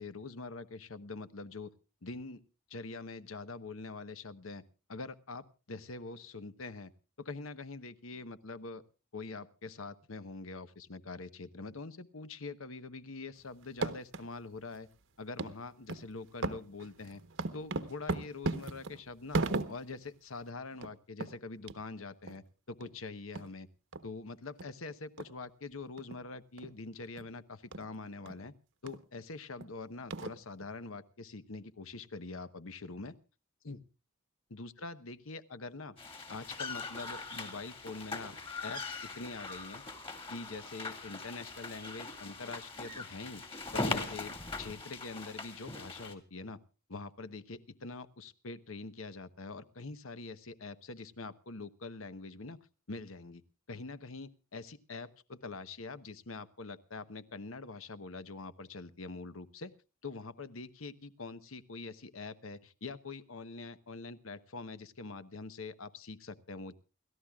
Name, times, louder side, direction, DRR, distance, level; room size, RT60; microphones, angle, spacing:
voice 1, 0.0-1.7 2.0-2.4 2.7-4.6 4.9-6.9 7.2-8.8 9.1-14.9 15.2-17.2 17.5-19.4 19.7-23.7 24.0-28.5 28.8-33.1 33.6-33.8 34.5-36.0 36.3-39.8 40.3-43.4 43.7-46.6 46.9-52.6 52.9-53.4 53.7-59.7 60.0-66.8, left 3 dB, 70° left, 12 dB, 1.1 m, -44 dB
sound 1, 13.6-14.2 14.7-14.8 15.4-15.5 15.9-16.1 16.4-20.0 20.4-20.5 20.7-20.9 21.2-21.3 21.7-21.8 22.3-22.4 22.8-22.9 23.3-23.5 23.9-24.0 24.6-24.7 25.2-25.3 26.0-26.2 26.6-26.7 27.2-27.3 27.7-27.8 28.3-28.4 28.9-29.0 29.6-29.7 30.1-30.7, right 3 dB, 65° right, 1.1 m, -36 dB
sound 2, 36.0-46.1, left 3 dB, 25° left, 2.3 m, -41 dB
29.0 x 13.5 x 2.4 m, 0.33 s
head